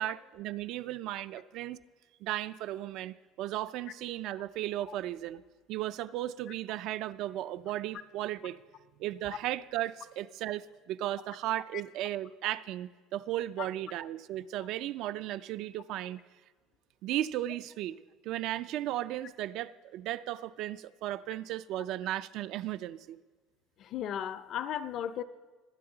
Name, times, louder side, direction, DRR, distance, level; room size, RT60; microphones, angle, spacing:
voice 1, 0.0-1.8 2.2-5.4 5.7-8.6 9.0-16.2 17.0-18.0 18.2-23.2, right 14 dB, 55° right, 0.3 m, -35 dB
voice 2, 23.8-25.2, left 9 dB, 45° left, 0.5 m, -35 dB
20.5 x 9.5 x 3.9 m
cardioid pair, 160°, 0 cm